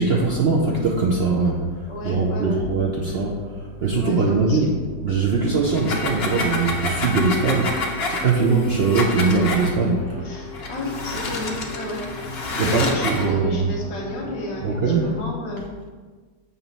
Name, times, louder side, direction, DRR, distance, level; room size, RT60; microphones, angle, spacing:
voice 1, 0.0-1.6 2.0-3.4 3.8-4.8 5.0-10.3 12.6-13.8 14.6-15.1, right 4 dB, 75° right, -2 dB, 0.5 m, -21 dB
sound 1, 1.7-15.2, left 2 dB, 10° left, 0.5 m, -41 dB
voice 2, 1.9-2.6 4.0-4.8 10.2-12.0 12.5-15.7, left 1 dB, 80° left, -2 dB, 1.8 m, -32 dB
sound 2, 5.7-9.7 10.5-13.3, left 2 dB, 55° left, 0.6 m, -28 dB
7.0 x 3.0 x 5.3 m, 1.4 s
omnidirectional pair, 1.9 m